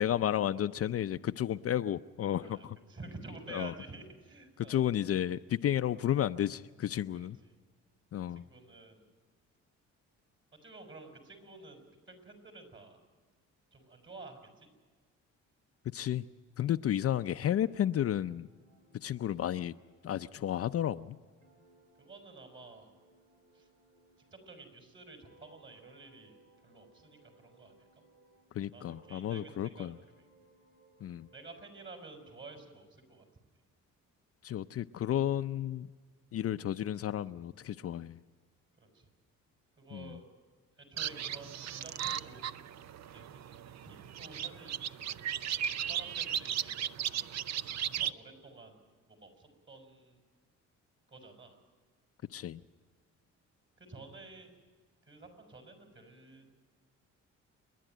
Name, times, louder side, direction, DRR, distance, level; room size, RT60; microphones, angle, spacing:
voice 1, 0.0-2.8 3.5-3.7 4.7-7.4 8.1-8.4 15.9-16.2 16.6-18.5 18.9-19.7 20.0-21.2 28.5-30.0 31.0-31.3 34.4-35.9 36.3-38.2 39.9-40.2 52.3-52.6, left 11 dB, 50° left, 11 dB, 0.5 m, -32 dB
voice 2, 2.4-4.8 7.1-7.5 8.3-9.0 10.6-13.0 13.7-14.7 22.0-22.9 23.5-23.7 24.3-26.4 26.6-28.0 28.6-30.0 31.3-33.2 38.8-39.1 39.8-40.3 40.8-42.5 43.0-43.4 43.8-44.8 45.8-46.9 47.8-50.2 51.1-51.6 53.8-54.5 55.1-56.5, right 3 dB, 40° right, 5 dB, 6.0 m, -51 dB
sound 1, 17.6-24.8 25.2-28.5 28.8-32.5, right 2 dB, 85° right, 3.2 m, -65 dB
sound 2, 41.0-48.1, right 9 dB, 60° right, 0.7 m, -36 dB
28.0 x 11.0 x 9.2 m, 1.4 s
cardioid pair, 90°, 30 cm